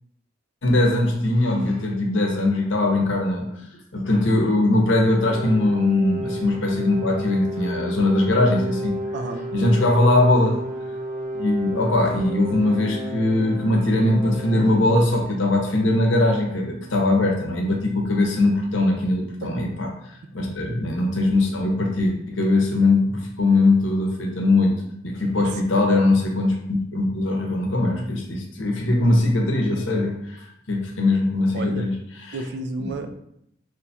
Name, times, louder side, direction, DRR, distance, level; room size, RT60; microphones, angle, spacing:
voice 1, 0.6-3.5 3.9-8.9 9.5-10.6 11.3-19.9 20.3-24.7 25.0-31.9 32.2-32.4, left 2 dB, 75° left, 1 dB, 0.8 m, -21 dB
sound 1, 5.2-15.1, equal, 45° right, 0.8 m, -32 dB
voice 2, 9.1-9.9 19.4-19.7 25.4-26.0 31.5-31.9 32.3-33.1, right 2 dB, 60° right, 6 dB, 0.4 m, -33 dB
3.1 x 2.3 x 4.0 m, 0.77 s
head